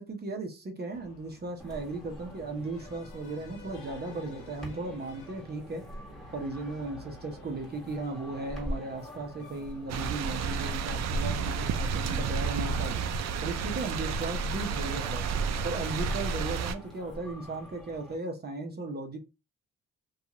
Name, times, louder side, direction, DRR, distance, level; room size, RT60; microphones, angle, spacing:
voice 1, 0.0-5.9 6.3-12.9 13.4-15.2 15.6-19.2, right 2 dB, 35° right, 2 dB, 0.7 m, -36 dB
Breathing, 0.9-15.5, left 4 dB, 90° left, 0.6 m, -54 dB
sound 1, 1.6-18.2, equal, ahead, 1.3 m, -45 dB
sound 2, 9.9-16.7, right 5 dB, 60° right, 0.5 m, -31 dB
2.5 x 2.3 x 2.9 m, 0.29 s
cardioid pair, 90°, 30 cm